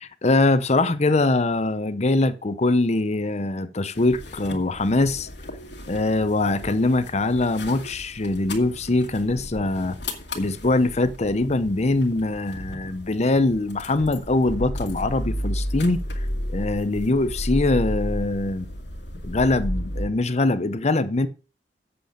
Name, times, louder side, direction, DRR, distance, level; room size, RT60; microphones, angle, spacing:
voice 1, 0.0-5.3 5.9-10.0 10.3-18.7 19.2-21.3, left 2 dB, 40° left, 0.8 m, -23 dB
sound 1, 3.9-20.1, left 1 dB, 90° left, 2.0 m, -33 dB
7.9 x 6.9 x 6.5 m
head